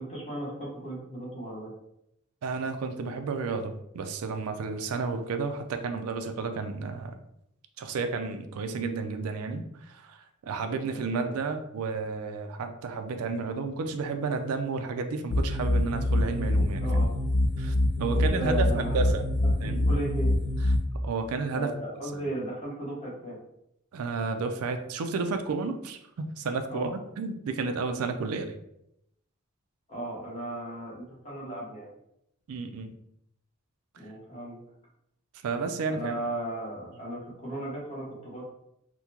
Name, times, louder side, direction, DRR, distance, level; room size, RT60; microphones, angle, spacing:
voice 1, 0.0-1.7 10.6-11.3 16.8-17.1 18.1-19.1 19.6-20.3 21.5-23.4 26.7-26.9 29.9-31.9 34.0-34.6 35.9-38.5, right 1 dB, 30° left, -5 dB, 1.0 m, -36 dB
voice 2, 2.4-7.2 7.8-10.2 10.4-16.9 17.6-19.2 19.6-19.9 21.0-21.7 22.1-22.3 23.9-28.5 32.5-32.9 35.4-36.1, right 4 dB, 85° right, 7 dB, 0.4 m, -32 dB
sound 1, 15.3-20.8, left 1 dB, 45° left, 0.4 m, -25 dB
3.6 x 2.1 x 2.8 m, 0.79 s
head